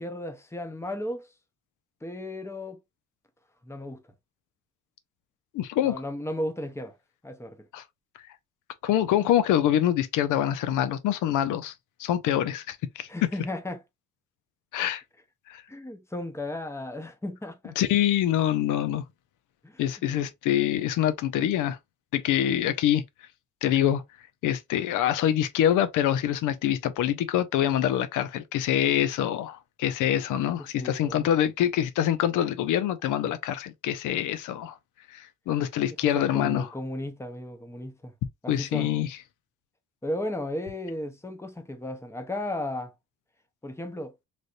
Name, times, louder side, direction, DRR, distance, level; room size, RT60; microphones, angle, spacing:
voice 1, 0.0-1.3 2.0-2.8 3.6-4.0 5.8-7.0 7.2-7.6 13.1-13.8 15.7-17.8 19.6-19.8 20.1-20.2 30.8-31.3 36.1-38.1 38.4-38.9 40.0-42.9 43.6-44.2, left 1 dB, 10° left, 0.8 m, -35 dB
voice 2, 5.5-6.0 7.7-7.8 8.8-11.7 12.0-13.1 14.7-15.0 15.5-15.6 17.8-19.0 19.8-21.8 22.1-23.0 23.6-24.0 24.4-34.8 35.1-36.7 38.5-39.2, left 11 dB, 85° left, 0.6 m, -25 dB
3.4 x 2.6 x 2.5 m
cardioid pair, 90°, 30 cm